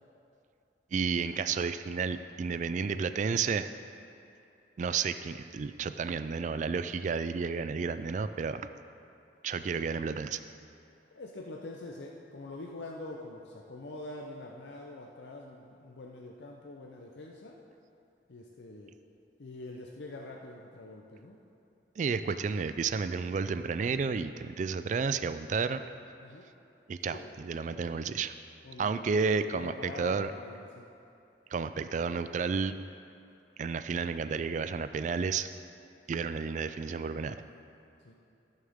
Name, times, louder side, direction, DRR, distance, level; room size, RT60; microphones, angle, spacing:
voice 1, 0.9-3.7 4.8-8.6 9.4-10.4 22.0-25.8 26.9-28.3 28.8-30.3 31.5-32.7 33.6-35.5 36.1-37.4, right 5 dB, 45° right, 11 dB, 0.3 m, -31 dB
voice 2, 11.1-17.6 18.3-18.9 19.4-21.4 22.3-22.4 26.2-26.5 27.0-27.3 27.6-27.9 28.6-29.1 29.5-30.8 38.0-38.2, left 2 dB, 80° left, 0 dB, 0.7 m, -45 dB
14.5 x 6.5 x 3.6 m, 2.7 s
head